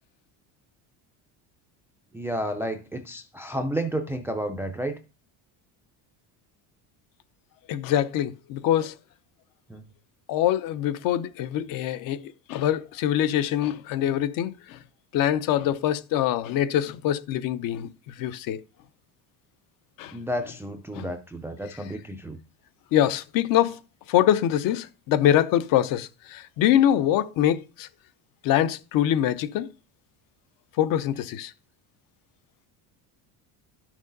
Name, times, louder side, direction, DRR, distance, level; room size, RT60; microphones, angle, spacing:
voice 1, 2.1-5.0 9.7-9.8 20.1-22.4, right 1 dB, 5° right, 0.4 m, -31 dB
voice 2, 7.7-8.9 10.3-12.2 12.5-14.8 15.1-17.9 18.2-18.6 20.0-20.1 20.9-21.1 22.9-23.8 24.1-27.9 28.4-29.7 30.8-31.5, left 11 dB, 50° left, 0.7 m, -24 dB
12.0 x 6.2 x 3.9 m
cardioid pair, 165°, 42 cm